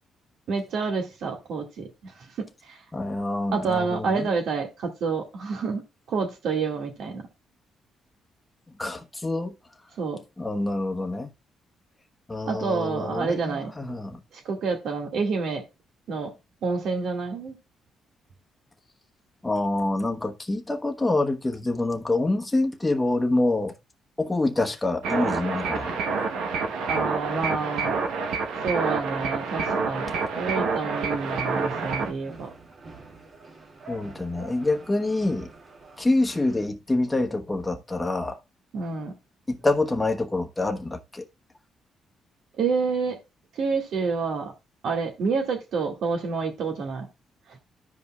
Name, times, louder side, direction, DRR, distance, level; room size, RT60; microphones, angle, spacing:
voice 1, 0.5-2.8 3.5-7.3 10.0-10.2 12.4-13.7 14.3-15.6 16.1-16.3 16.6-17.6 26.8-27.9 28.6-32.5 38.7-39.1 42.6-43.2 43.6-44.5 44.8-47.1, right 4 dB, 70° right, 2.0 m, -28 dB
voice 2, 2.9-4.3 8.8-9.5 10.4-11.3 12.3-14.2 19.4-23.7 24.2-26.0 33.9-35.5 36.0-38.4 39.5-41.2, left 2 dB, 15° left, 1.1 m, -26 dB
sound 1, 25.0-32.1, right 4 dB, 90° right, 1.1 m, -28 dB
sound 2, 30.9-36.7, right 2 dB, 45° right, 2.2 m, -46 dB
14.0 x 5.1 x 2.4 m
cardioid pair, 90°, 0 cm